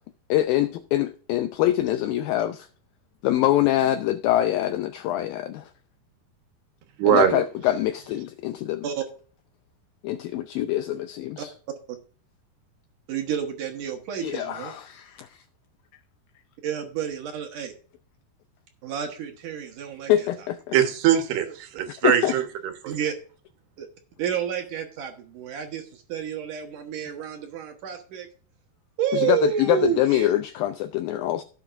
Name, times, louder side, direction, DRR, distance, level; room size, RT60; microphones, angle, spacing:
voice 1, 0.3-2.7 3.2-5.7 7.0-8.9 10.0-11.5 14.2-15.4 20.1-20.8 22.0-22.3 29.1-31.4, left 13 dB, 85° left, 2.1 m, -24 dB
voice 2, 7.0-7.4 20.7-22.4 22.8-22.9, right 10 dB, 80° right, 3.2 m, -21 dB
voice 3, 13.1-14.7 16.6-17.7 18.8-20.3 22.9-23.1 23.8-23.9 24.2-28.3 29.0-30.3, right 9 dB, 60° right, 2.4 m, -30 dB
16.5 x 7.1 x 2.5 m
omnidirectional pair, 4.8 m